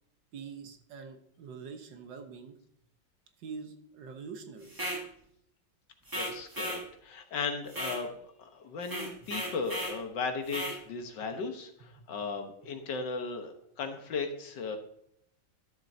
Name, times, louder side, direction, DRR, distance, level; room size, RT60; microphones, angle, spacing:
voice 1, 0.3-2.6 3.4-4.7 9.2-9.3 12.0-12.3, right 5 dB, 70° right, 5 dB, 1.8 m, -45 dB
sound 1, 4.7-5.0 6.1-6.8 7.7-8.0 8.8-10.0 10.5-10.8, equal, 10° right, 1.6 m, -36 dB
voice 2, 6.1-14.8, left 4 dB, 70° left, 5 dB, 1.8 m, -36 dB
12.5 x 7.5 x 2.7 m, 0.72 s
omnidirectional pair, 2.0 m